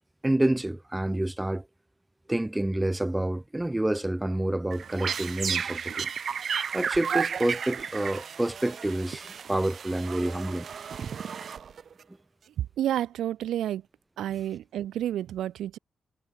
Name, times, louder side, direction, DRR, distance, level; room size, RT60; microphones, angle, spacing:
voice 1, 0.2-1.7 2.3-6.1 6.7-10.7, right 1 dB, 10° right, 6.1 m, -28 dB
sound 1, 4.7-12.0, right 7 dB, 45° right, 4.5 m, -33 dB
voice 2, 12.6-13.8 14.2-15.8, right 11 dB, 90° right, 3.7 m, -30 dB
cardioid pair, 140°, 0 cm